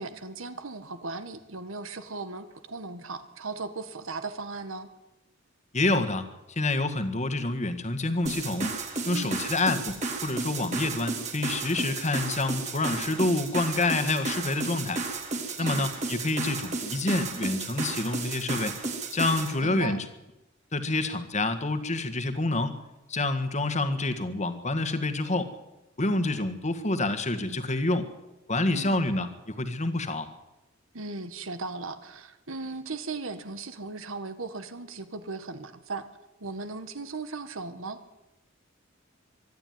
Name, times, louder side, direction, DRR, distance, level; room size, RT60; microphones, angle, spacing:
voice 1, 0.0-4.9 9.1-9.4 15.6-15.9 19.6-20.0 28.7-29.1 30.9-36.1 36.4-38.0, right 3 dB, 85° right, 10 dB, 1.6 m, -37 dB
voice 2, 5.7-8.8 9.1-9.9 10.2-15.0 15.6-18.7 19.1-20.0 20.7-22.8 23.1-25.5 26.0-28.1 28.5-30.3, left 2 dB, 35° left, 10 dB, 1.7 m, -27 dB
sound 1, 8.3-19.6, right 3 dB, 35° right, 3.2 m, -33 dB
24.5 x 11.5 x 9.5 m, 0.98 s
head